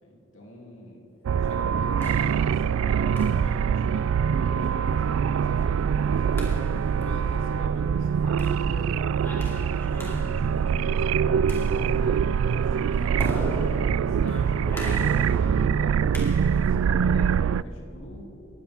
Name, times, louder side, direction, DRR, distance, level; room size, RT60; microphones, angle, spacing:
voice 1, 0.0-1.0 1.4-8.9 9.2-14.6 15.0-16.1 16.4-18.2, left 1 dB, 70° left, -1 dB, 2.8 m, -44 dB
sound 1, 1.2-17.6, right 7 dB, 85° right, 0.3 m, -24 dB
sound 2, 1.6-16.8, equal, 10° left, 2.6 m, -39 dB
28.5 x 14.5 x 3.5 m, 2.9 s
head